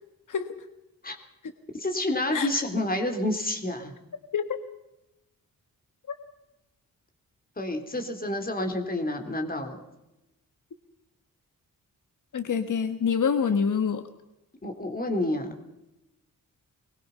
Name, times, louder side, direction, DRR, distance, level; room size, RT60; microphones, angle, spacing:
voice 1, 1.7-3.9 7.6-9.8 14.6-15.5, left 1 dB, 25° left, 5 dB, 3.7 m, -29 dB
voice 2, 2.3-2.6 4.3-4.6 12.3-14.1, left 6 dB, 65° left, 8 dB, 1.5 m, -26 dB
23.5 x 22.0 x 5.7 m, 0.93 s
wide cardioid pair, 105°, 34 cm